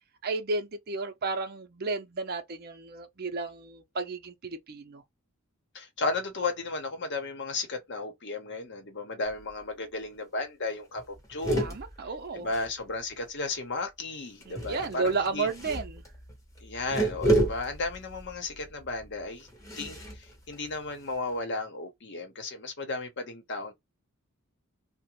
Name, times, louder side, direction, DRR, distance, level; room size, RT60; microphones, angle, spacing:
voice 1, 0.2-5.0 11.6-12.5 14.5-16.0, right 3 dB, 45° right, 0.6 m, -32 dB
voice 2, 5.7-11.8 12.3-15.5 16.6-19.5 19.8-23.7, left 3 dB, 55° left, 0.9 m, -34 dB
sound 1, 9.3-9.7 10.0-10.1 10.4-10.6 11.0-13.3 14.4-21.3, right 1 dB, 15° left, 0.8 m, -32 dB
2.4 x 2.1 x 2.9 m
head